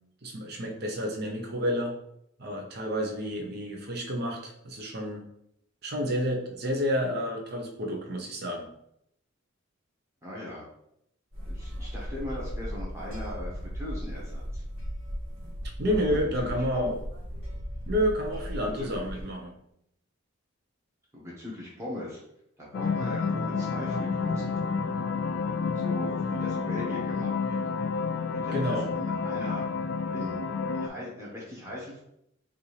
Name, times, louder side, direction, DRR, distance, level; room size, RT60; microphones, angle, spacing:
voice 1, 0.2-1.9 2.4-5.3 5.8-8.6 15.8-17.0 17.9-19.6 28.5-28.9, equal, 50° right, 2 dB, 0.7 m, -30 dB
voice 2, 10.2-10.6 11.5-14.6 15.9-16.2 16.5-16.9 18.7-19.1 21.1-22.2 22.6-24.5 25.7-27.6 28.3-29.7 30.1-30.4 30.7-32.0, left 1 dB, 15° right, -5 dB, 1.3 m, -39 dB
sound 1, 11.3-19.2, equal, 75° right, 1.4 m, -37 dB
sound 2, 22.7-30.9, left 5 dB, 50° left, 0.3 m, -30 dB
5.2 x 2.6 x 3.3 m, 0.76 s
head